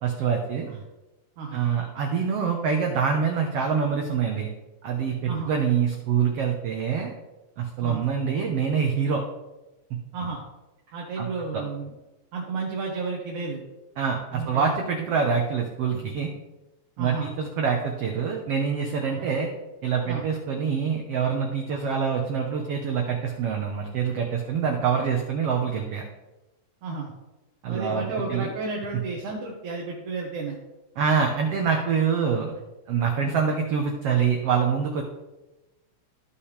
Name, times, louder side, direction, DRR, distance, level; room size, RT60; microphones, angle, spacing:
voice 1, 0.0-0.7 1.5-4.5 4.8-7.1 7.6-9.2 11.2-11.3 11.5-11.6 14.0-16.3 17.0-19.5 19.8-26.0 27.6-28.5 31.0-32.5 32.9-35.0, right 6 dB, 85° right, 2 dB, 1.3 m, -25 dB
voice 2, 10.9-11.9 12.3-13.6 14.3-14.7 17.0-17.3 19.1-19.2 20.1-20.2 21.7-21.8 26.8-27.1 27.7-30.6 33.2-33.4, right 4 dB, 65° right, -2 dB, 2.5 m, -32 dB
15.0 x 5.6 x 3.3 m, 1.0 s
omnidirectional pair, 4.0 m